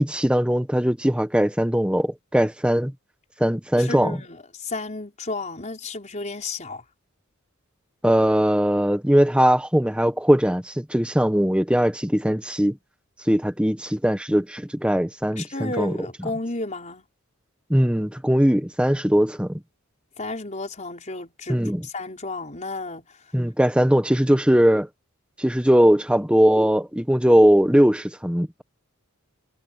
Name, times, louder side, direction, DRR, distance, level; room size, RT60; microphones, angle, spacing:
voice 1, 0.0-2.9 3.4-4.2 8.0-12.8 13.2-16.0 17.7-19.6 21.5-21.9 23.3-24.9 25.4-28.6, equal, 5° right, 1.3 m, -20 dB
voice 2, 3.8-6.8 15.4-17.1 20.2-23.3, left 2 dB, 30° left, 5.3 m, -32 dB
head